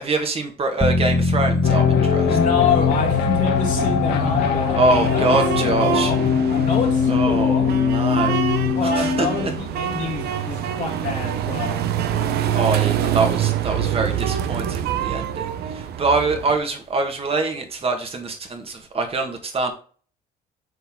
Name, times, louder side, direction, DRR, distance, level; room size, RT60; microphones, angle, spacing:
voice 1, 0.0-2.4 4.8-6.1 7.1-8.4 8.8-9.3 12.3-19.7, right 3 dB, 35° right, 1.8 m, -24 dB
sound 1, 0.8-13.3 13.7-13.8, left 2 dB, 15° left, 1.4 m, -28 dB
sound 2, 1.6-9.5, left 6 dB, 80° left, 1.3 m, -21 dB
sound 3, 2.1-16.6, right 10 dB, 70° right, 0.7 m, -26 dB
voice 2, 2.3-7.8 8.7-11.9, left 6 dB, 50° left, 1.7 m, -27 dB
6.6 x 4.5 x 3.7 m
cardioid pair, 110°, 17 cm